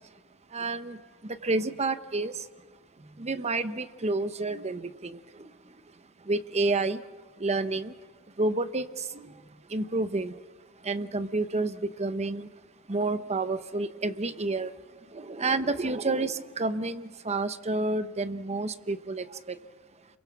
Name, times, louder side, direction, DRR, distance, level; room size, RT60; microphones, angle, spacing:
voice 1, 0.5-2.5 3.2-5.5 6.2-7.0 7.4-7.9 8.4-9.3 9.7-10.4 10.8-12.5 12.9-14.7 15.1-19.6, right 3 dB, 30° right, 11 dB, 0.9 m, -30 dB
29.0 x 23.0 x 6.0 m, 1.4 s
head